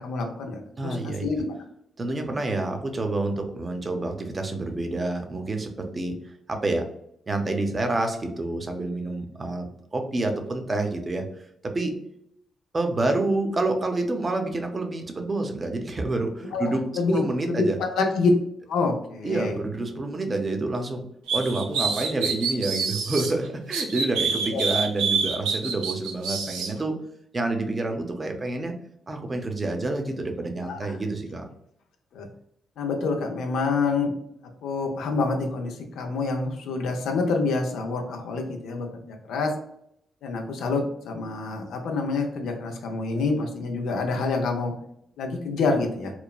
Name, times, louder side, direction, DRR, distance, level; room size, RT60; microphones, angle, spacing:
voice 1, 0.0-1.5 16.5-16.6 16.9-18.3 18.7-19.6 24.5-24.6 30.7-30.8 32.1-32.3 32.8-34.1 34.6-39.5 40.2-44.7 45.2-46.1, left 3 dB, 75° left, 3 dB, 0.5 m, -27 dB
voice 2, 0.8-1.3 2.0-6.2 6.5-6.9 7.3-11.3 11.6-12.0 12.7-16.9 17.1-17.8 19.2-21.0 21.3-27.0 27.3-28.8 29.1-31.5, right 2 dB, 35° right, 4 dB, 0.6 m, -28 dB
sound 1, 21.3-23.3 23.7-26.7, right 5 dB, 85° right, 0.4 m, -26 dB
3.0 x 2.1 x 2.3 m, 0.73 s
hypercardioid pair, 45°, 0 cm